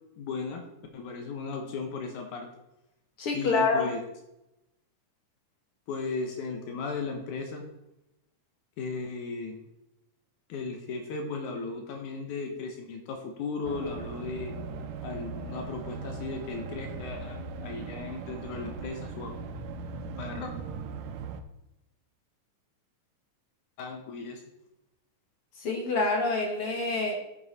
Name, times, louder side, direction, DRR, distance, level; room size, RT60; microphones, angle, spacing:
voice 1, 0.2-0.7 0.9-2.5 3.3-4.0 5.9-7.6 8.8-9.6 10.5-14.5 15.0-19.3 20.2-20.5 23.8-24.4, left 4 dB, 80° left, 3 dB, 2.6 m, -36 dB
voice 2, 3.2-4.0 25.6-27.1, left 3 dB, 55° left, 1 dB, 2.0 m, -27 dB
sound 1, 13.6-21.4, right 4 dB, 75° right, 1.9 m, -39 dB
10.5 x 9.5 x 4.2 m, 0.90 s
omnidirectional pair, 3.6 m